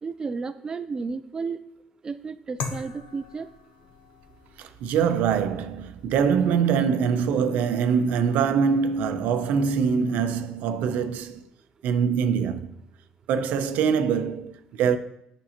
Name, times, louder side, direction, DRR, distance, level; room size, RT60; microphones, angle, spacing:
voice 1, 0.0-1.6 2.0-3.5, right 4 dB, 25° right, 0.3 m, -32 dB
sound 1, 2.6-11.4, left 5 dB, 75° left, 0.8 m, -44 dB
voice 2, 4.6-11.4 11.8-12.7 13.3-15.0, right 6 dB, 75° right, 0.5 m, -23 dB
8.5 x 5.3 x 2.9 m
cardioid pair, 100°, 3 cm